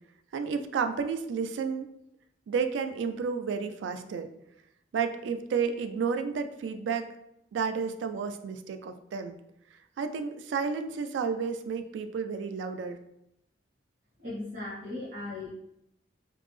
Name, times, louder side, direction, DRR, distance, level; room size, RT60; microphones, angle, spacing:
voice 1, 0.3-1.9 2.5-4.3 4.9-7.1 7.5-9.3 10.0-13.0, right 5 dB, 85° right, 7 dB, 0.3 m, -31 dB
voice 2, 14.2-15.5, left 2 dB, 50° right, -11 dB, 0.8 m, -37 dB
3.3 x 2.0 x 3.2 m, 0.80 s
head